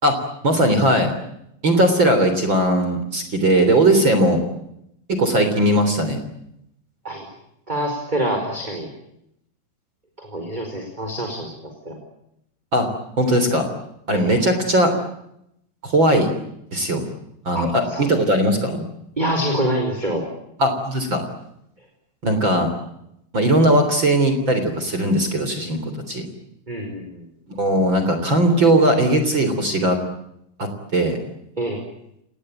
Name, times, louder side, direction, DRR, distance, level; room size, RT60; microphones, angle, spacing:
voice 1, 0.4-1.1 1.6-4.4 5.1-6.2 12.7-12.9 13.2-13.7 14.1-14.9 15.8-16.3 16.7-17.0 17.4-18.8 20.6-21.2 22.2-22.7 23.3-26.3 27.6-30.0 30.6-31.2, right 1 dB, 25° right, 8 dB, 3.3 m, -18 dB
voice 2, 7.7-8.9 10.2-11.5 11.8-12.0 14.1-14.4 17.5-18.1 19.2-20.3 26.7-27.2 31.6-31.8, right 1 dB, 10° right, 3 dB, 4.0 m, -26 dB
29.5 x 19.5 x 9.0 m, 0.80 s
omnidirectional pair, 5.8 m